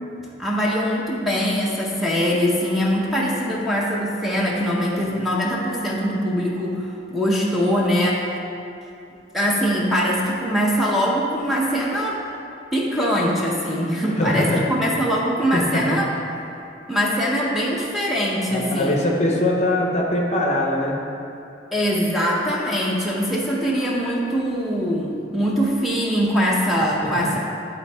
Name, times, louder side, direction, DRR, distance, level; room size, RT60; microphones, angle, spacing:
voice 1, 0.4-8.3 9.3-12.2 12.7-16.1 16.9-19.0 21.7-27.4, equal, ahead, -5 dB, 0.6 m, -22 dB
voice 2, 14.2-14.6 15.5-16.0 18.5-21.0 27.0-27.3, left 1 dB, 35° left, 0 dB, 0.8 m, -22 dB
11.0 x 4.2 x 3.4 m, 2.7 s
head